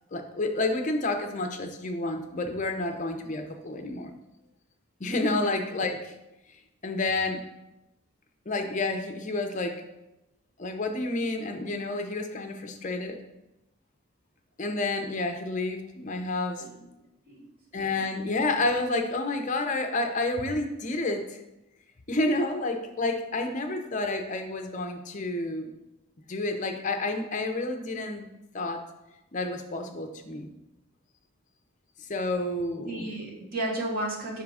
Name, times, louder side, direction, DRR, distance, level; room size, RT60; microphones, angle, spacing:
voice 1, 0.1-4.1 5.0-6.1 6.8-7.4 8.5-9.7 10.6-13.2 14.6-16.6 17.7-21.4 22.1-25.7 26.3-28.3 28.5-28.8 29.3-30.5 32.0-33.1, left 2 dB, 35° left, 4 dB, 0.6 m, -29 dB
voice 2, 17.7-18.0 32.8-34.4, right 1 dB, 45° right, -1 dB, 1.1 m, -33 dB
5.4 x 3.7 x 4.8 m, 0.94 s
head